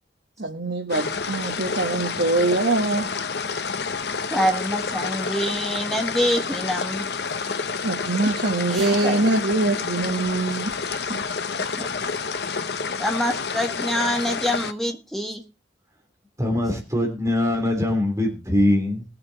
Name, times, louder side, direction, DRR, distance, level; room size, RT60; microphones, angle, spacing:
voice 1, 0.4-3.1 7.8-11.2, right 2 dB, 75° right, 1.5 m, -23 dB
sound 1, 0.9-14.7, left 5 dB, 70° left, 0.9 m, -29 dB
voice 2, 4.3-7.1 8.7-9.3 11.6-11.9 13.0-15.4, equal, ahead, 1.8 m, -26 dB
voice 3, 16.4-19.1, left 1 dB, 15° right, 3.2 m, -22 dB
20.0 x 7.7 x 4.1 m
head